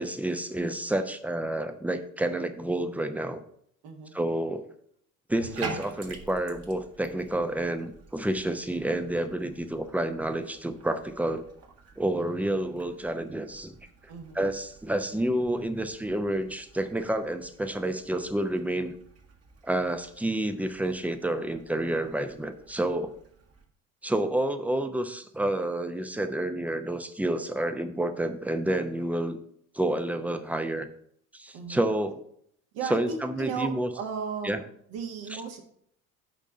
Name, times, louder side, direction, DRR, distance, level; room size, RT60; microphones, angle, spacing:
voice 1, 0.0-3.4 4.1-4.7 5.3-11.4 12.0-13.8 14.3-18.9 19.6-23.1 24.0-29.4 29.7-30.9 31.3-32.2 32.9-33.9 34.4-34.6 35.3-35.4, right 1 dB, 5° right, 8 dB, 0.7 m, -29 dB
voice 2, 3.8-4.1 14.1-14.5 31.5-31.9 32.7-34.6 34.9-35.6, right 6 dB, 60° right, 3 dB, 1.8 m, -35 dB
Bathtub (filling or washing), 5.3-23.6, right 4 dB, 35° right, 1.5 m, -47 dB
11.0 x 3.7 x 5.5 m, 0.67 s
hypercardioid pair, 70°, 42 cm